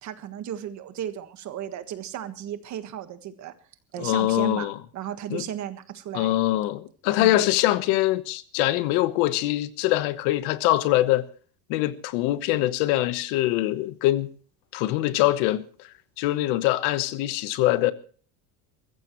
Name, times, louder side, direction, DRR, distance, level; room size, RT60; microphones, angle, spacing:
voice 1, 0.0-3.5 3.9-6.4 7.2-7.4, right 10 dB, 35° right, 1.5 m, -35 dB
voice 2, 4.0-4.8 5.3-5.5 6.1-11.2 11.7-14.3 14.7-17.9, left 15 dB, 65° left, 1.2 m, -23 dB
22.5 x 15.0 x 3.1 m
cardioid pair, 155°, 47 cm